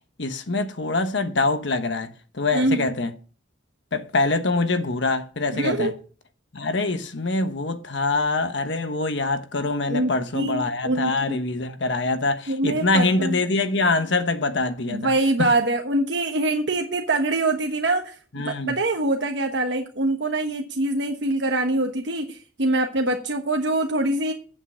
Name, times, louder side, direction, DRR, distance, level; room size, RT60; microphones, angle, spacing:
voice 1, 0.2-3.1 3.9-5.9 6.5-15.1 15.4-15.5 18.3-18.8, left 3 dB, 70° left, 1.2 m, -24 dB
voice 2, 2.5-2.9 5.5-5.9 9.9-11.4 12.5-13.4 14.9-24.3, right 2 dB, 65° right, 1.2 m, -24 dB
8.8 x 8.0 x 6.2 m
head